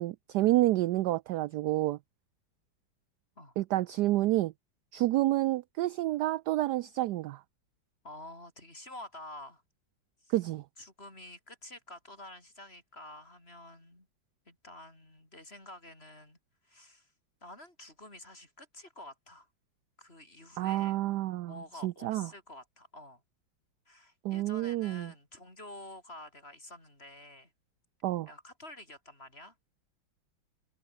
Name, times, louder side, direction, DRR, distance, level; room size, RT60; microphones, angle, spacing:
voice 1, 0.0-2.0 3.6-4.5 4.9-7.4 10.3-10.6 20.6-21.5 21.8-22.3 24.2-25.1 28.0-28.3, right 16 dB, 80° right, 0.9 m, -29 dB
voice 2, 8.0-9.6 10.2-10.3 10.8-14.1 14.5-16.4 16.6-17.1 17.4-19.5 20.0-21.0 21.5-23.2 23.9-27.5 28.3-29.5, left 1 dB, 30° left, 6.7 m, -49 dB
omnidirectional pair, 2.2 m